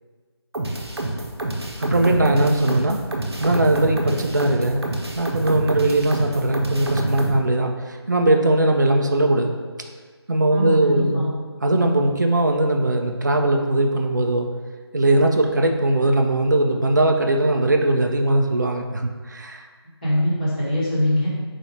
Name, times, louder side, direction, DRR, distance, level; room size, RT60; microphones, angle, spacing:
sound 1, 0.5-7.4, right 1 dB, 65° right, 0.7 m, -27 dB
voice 1, 1.8-3.0 3.4-4.9 5.1-9.6 10.3-11.2 11.6-14.5 14.9-19.7, right 1 dB, 45° right, 3 dB, 0.4 m, -20 dB
voice 2, 10.5-11.3 20.0-21.3, equal, 20° left, -10 dB, 1.2 m, -22 dB
4.1 x 2.7 x 4.6 m, 1.5 s
figure-of-eight pair, 165°, 14 cm